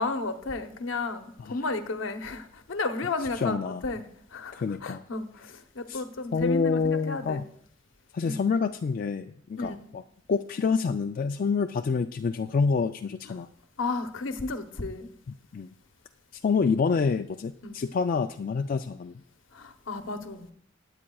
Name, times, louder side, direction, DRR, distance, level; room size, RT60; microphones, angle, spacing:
voice 1, 0.0-7.4 8.2-8.4 9.6-9.9 13.8-15.1 17.6-17.8 19.5-20.5, left 3 dB, 70° left, 8 dB, 0.9 m, -33 dB
voice 2, 3.4-3.8 4.5-5.0 5.9-6.0 6.3-7.4 8.1-10.0 10.3-13.5 15.5-15.7 16.4-19.1, left 5 dB, 45° left, 6 dB, 0.3 m, -27 dB
20.5 x 8.8 x 2.3 m, 0.66 s
head